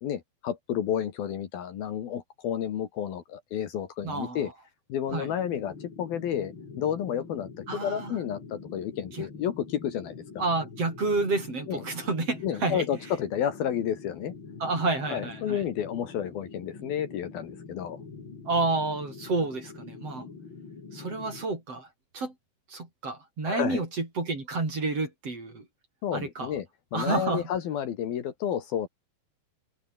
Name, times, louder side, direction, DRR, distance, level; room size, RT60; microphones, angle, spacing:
voice 1, 0.0-4.5 4.9-7.5 7.8-10.4 11.7-11.8 12.4-14.3 15.1-18.0 23.4-23.8 26.0-26.7 26.9-28.9, left 9 dB, 65° left, 3.5 m, -31 dB
voice 2, 4.0-4.4 5.1-5.3 7.7-8.1 9.1-9.2 10.4-12.8 14.6-15.6 18.4-20.3 20.9-21.9 22.1-22.3 22.7-25.6 26.1-26.5 26.9-27.4, right 3 dB, 35° right, 6.5 m, -29 dB
sound 1, 5.1-21.5, left 4 dB, 30° left, 3.6 m, -45 dB
omnidirectional pair, 4.9 m